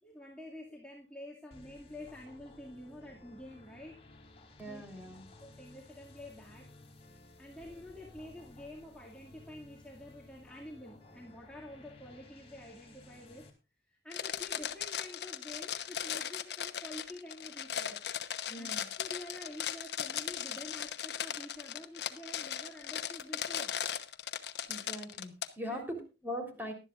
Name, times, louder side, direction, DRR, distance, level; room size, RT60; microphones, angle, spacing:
voice 1, 0.0-4.0 4.7-4.8 5.4-6.7 7.4-13.5 13.9-18.1 18.6-23.8 25.7-25.8, left 1 dB, 5° left, -4 dB, 2.2 m, -48 dB
sound 1, 1.5-13.5, left 2 dB, 35° left, 3.1 m, -56 dB
voice 2, 4.6-5.2 18.5-18.9 24.7-26.7, equal, 10° right, 3 dB, 3.6 m, -41 dB
sound 2, 14.1-25.5, left 9 dB, 65° left, 1.0 m, -38 dB
19.0 x 12.0 x 2.5 m, 0.30 s
head